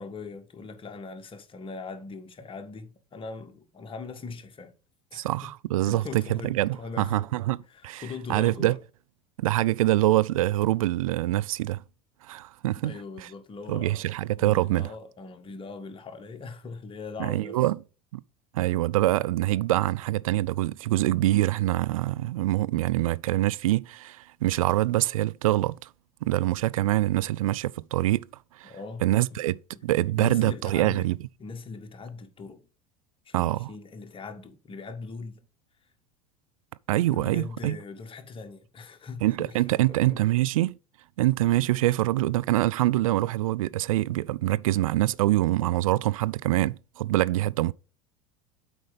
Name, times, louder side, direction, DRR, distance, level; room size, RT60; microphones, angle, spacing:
voice 1, 0.0-4.7 5.1-5.5 5.8-7.3 7.7-8.8 12.8-14.0 14.4-17.6 28.6-29.1 29.7-29.8 30.2-32.6 33.2-35.4 37.1-39.6 39.9-40.3, left 4 dB, 30° left, 1.6 m, -40 dB
voice 2, 5.1-7.6 7.8-8.0 8.3-8.7 9.4-11.8 12.3-12.9 13.7-14.9 17.2-17.8 18.1-18.2 18.5-25.7 26.2-28.2 28.6-28.7 29.0-31.2 33.3-33.7 36.9-37.8 39.2-40.8 41.2-47.7, right 16 dB, 75° right, 0.4 m, -25 dB
7.9 x 4.9 x 5.2 m
hypercardioid pair, 80°, 18 cm